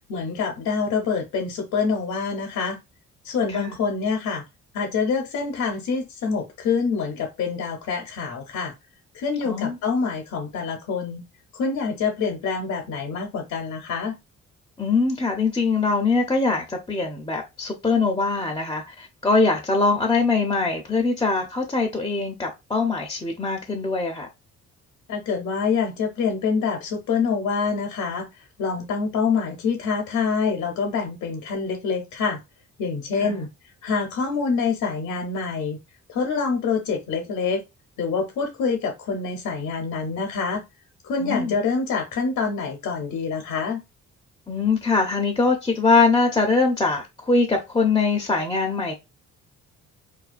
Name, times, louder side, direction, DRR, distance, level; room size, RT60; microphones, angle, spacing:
voice 1, 0.1-2.8 3.2-4.4 4.7-8.7 9.1-11.2 11.5-14.1 25.1-28.3 28.6-32.4 32.8-33.5 33.8-35.8 36.1-37.6 38.0-40.6 41.0-43.8, left 5 dB, 70° left, 0.7 m, -26 dB
voice 2, 9.4-9.8 14.8-24.3 33.2-33.4 41.2-41.5 44.5-48.9, left 3 dB, 15° left, 0.5 m, -22 dB
2.3 x 2.2 x 2.4 m
cardioid pair, 90°, 30 cm